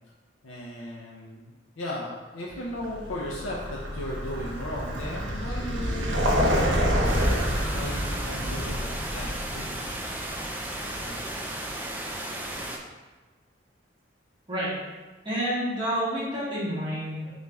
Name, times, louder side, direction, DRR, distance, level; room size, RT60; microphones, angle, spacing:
voice 1, 0.4-6.7 7.7-9.8 11.0-11.2, left 1 dB, 85° left, -5 dB, 0.6 m, -36 dB
Vehicle, 2.7-11.5, equal, 75° right, 0.8 m, -28 dB
sound 1, 7.0-12.8, right 1 dB, 10° right, 0.3 m, -35 dB
voice 2, 15.2-17.3, equal, 25° right, -9 dB, 1.3 m, -29 dB
3.9 x 3.2 x 3.4 m, 1.3 s
head